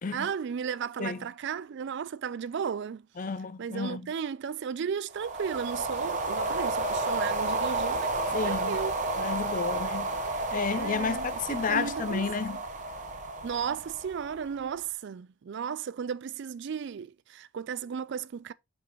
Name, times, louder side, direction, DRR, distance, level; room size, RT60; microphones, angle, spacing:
voice 1, 0.1-3.0 3.6-8.1 8.4-8.9 10.7-12.6 13.4-18.5, right 7 dB, 50° right, 0.3 m, -35 dB
voice 2, 3.2-4.0 8.3-8.8 9.2-10.1 10.5-12.6, left 5 dB, 35° left, 0.4 m, -31 dB
sound 1, 5.1-14.6, right 2 dB, 35° right, 0.9 m, -31 dB
5.3 x 4.6 x 4.0 m
head